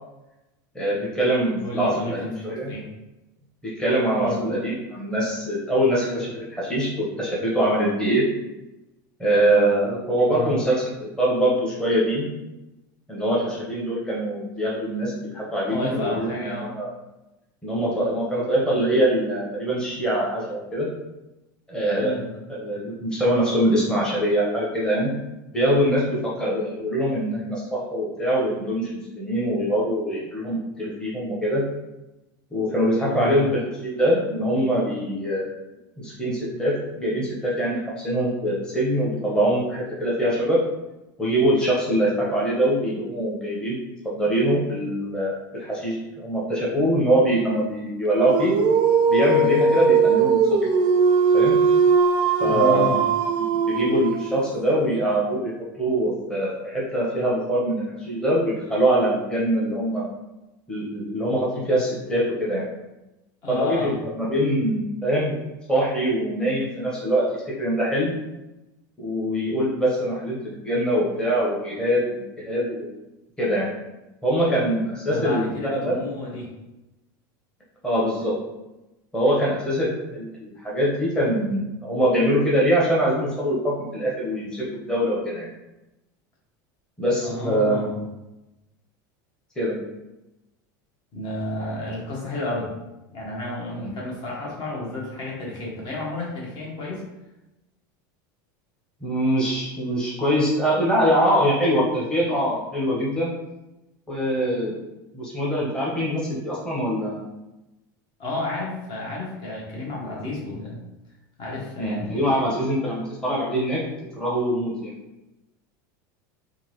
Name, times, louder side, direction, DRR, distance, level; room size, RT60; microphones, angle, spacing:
voice 1, 0.7-2.7 3.6-8.2 9.2-12.3 13.1-16.9 17.6-20.9 21.7-22.1 22.5-25.1 25.5-31.6 32.5-35.5 36.0-40.6 41.2-43.8 44.0-48.5 49.1-50.6 51.3-51.6 52.4-52.9 53.6-55.5 55.8-60.1 60.7-62.6 63.5-65.4 65.7-68.1 69.0-72.8 73.4-73.7 74.2-76.0 77.8-78.3 79.1-85.5 87.0-87.8 89.6-89.8 93.8-93.9 99.0-103.3 104.1-104.8 105.1-107.2 111.8-113.8 114.2-114.9, right 1 dB, 5° left, -6 dB, 0.9 m, -23 dB
voice 2, 1.6-2.8 4.2-4.4 10.3-10.6 15.7-16.7 22.0-22.2 33.0-33.4 52.4-53.0 63.4-63.9 75.1-76.5 87.2-88.0 91.1-92.7 93.1-97.0 108.2-110.8 111.4-112.4, left 2 dB, 45° left, -4 dB, 1.3 m, -31 dB
Dog, 48.2-54.5, right 5 dB, 50° right, 0.4 m, -20 dB
3.6 x 2.6 x 3.1 m, 0.98 s
supercardioid pair, 125°, 11 cm